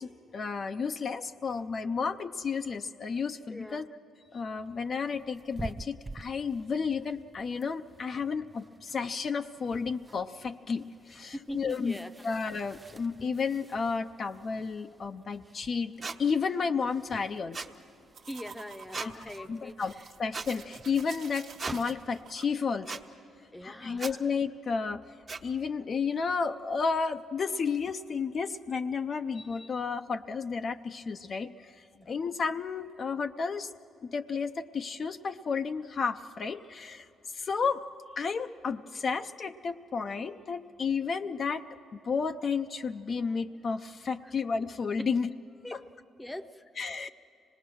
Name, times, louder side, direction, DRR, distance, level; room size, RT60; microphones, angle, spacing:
voice 1, 0.0-3.9 4.3-12.0 12.2-15.9 16.2-17.6 19.0-19.9 20.2-22.9 23.6-25.0 25.4-33.7 34.0-37.1 37.3-37.8 38.2-41.6 41.9-45.3 45.7-45.8 46.8-47.1, left 5 dB, 50° left, 7 dB, 0.5 m, -32 dB
voice 2, 3.5-3.8 11.3-12.1 18.3-19.8 23.5-24.2 31.9-32.3 45.6-45.8 46.2-46.6, left 1 dB, 10° left, 7 dB, 0.7 m, -42 dB
sound 1, 4.6-22.3, right 2 dB, 20° right, 0.5 m, -50 dB
sound 2, 16.0-16.2 17.5-17.7 18.9-19.1 20.3-20.5 21.6-21.8 22.9-23.0 24.0-24.1 25.3-25.4, right 4 dB, 40° right, 1.0 m, -36 dB
sound 3, 18.1-22.5, right 6 dB, 70° right, 1.1 m, -49 dB
25.0 x 19.5 x 6.2 m, 2.8 s
cardioid pair, 90°, 0 cm